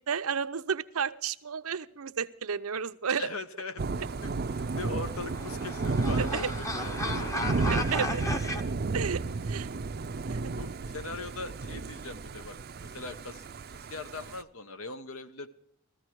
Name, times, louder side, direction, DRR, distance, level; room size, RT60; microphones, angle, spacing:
voice 1, 0.0-3.3 6.2-6.5 7.7-8.2 8.9-9.2 9.5-9.7 10.2-10.5, right 6 dB, 90° right, 11 dB, 0.7 m, -32 dB
voice 2, 3.2-3.8 4.2-7.7 10.5-12.6 12.8-13.4 13.9-15.5, left 3 dB, 80° left, 10 dB, 1.2 m, -40 dB
Thunder / Rain, 3.8-14.4, right 3 dB, 45° right, 0.5 m, -33 dB
sound 1, 4.7-8.6, left 1 dB, 15° left, 0.8 m, -35 dB
15.0 x 14.0 x 4.6 m, 0.67 s
head